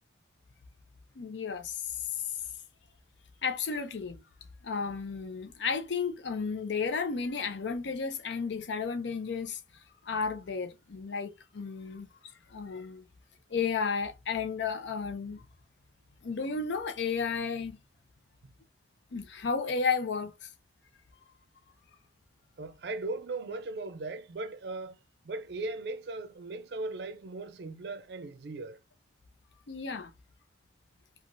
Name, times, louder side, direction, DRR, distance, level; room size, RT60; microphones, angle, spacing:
voice 1, 1.2-2.1 3.4-4.2 4.6-9.6 10.1-12.1 12.5-13.0 13.5-15.5 16.2-17.8 19.1-20.5 29.7-30.1, left 5 dB, 80° left, 0.5 m, -33 dB
voice 2, 22.6-25.0 25.2-28.8, right 2 dB, 70° right, 0.4 m, -38 dB
3.0 x 2.4 x 2.5 m
head